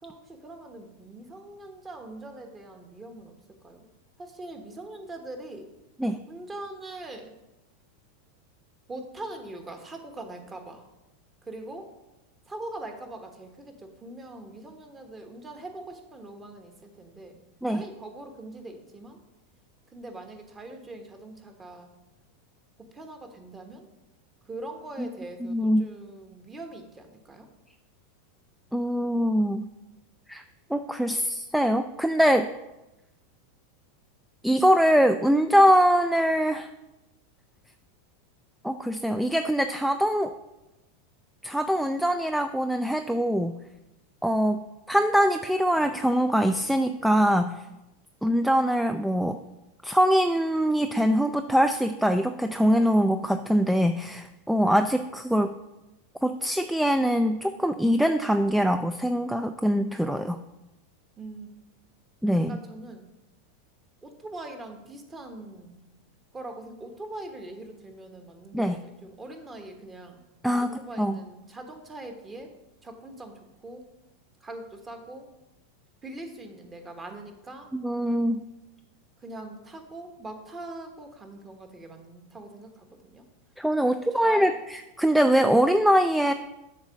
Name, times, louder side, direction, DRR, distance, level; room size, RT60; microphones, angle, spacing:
voice 1, 0.0-3.3 3.6-3.9 4.2-5.7 6.3-7.3 8.9-10.8 11.4-11.9 12.5-17.4 17.7-19.2 19.9-21.9 22.9-23.9 24.4-27.5 61.2-61.5 62.5-63.1 64.0-65.8 66.3-70.2 70.6-72.5 72.8-73.8 74.4-75.3 76.0-77.7 79.2-83.2 83.8-84.5, right 2 dB, 20° right, 5 dB, 1.2 m, -42 dB
voice 2, 25.4-25.9 28.7-29.6 30.3-30.4 30.7-32.5 34.4-36.7 38.6-40.3 41.4-43.6 44.2-44.6 44.9-47.6 48.2-49.4 49.8-55.5 56.2-60.4 62.2-62.6 68.5-68.8 70.4-71.2 77.7-78.4 83.6-86.3, equal, ahead, 8 dB, 0.3 m, -23 dB
7.2 x 3.7 x 6.2 m, 0.97 s
hypercardioid pair, 95°, 0 cm